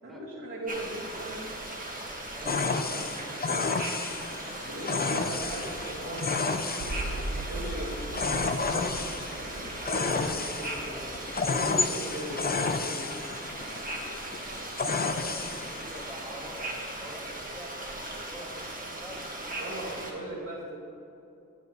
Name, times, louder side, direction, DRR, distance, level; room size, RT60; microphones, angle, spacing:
voice 1, 0.0-1.5 2.4-3.2 4.6-6.3 7.5-8.0 9.9-13.1 19.6-20.8, right 1 dB, 45° right, -10 dB, 2.0 m, -39 dB
sound 1, 0.7-20.1, right 1 dB, 25° right, 1.7 m, -38 dB
voice 2, 2.3-3.9 8.7-9.5 15.2-19.4, equal, ahead, -4 dB, 2.0 m, -47 dB
sound 2, 2.5-16.1, left 4 dB, 30° left, 0.5 m, -31 dB
sound 3, 6.8-12.8 13.1-13.2, right 2 dB, 75° right, 0.8 m, -40 dB
11.0 x 7.9 x 3.1 m, 2.7 s
cardioid pair, 55°, 32 cm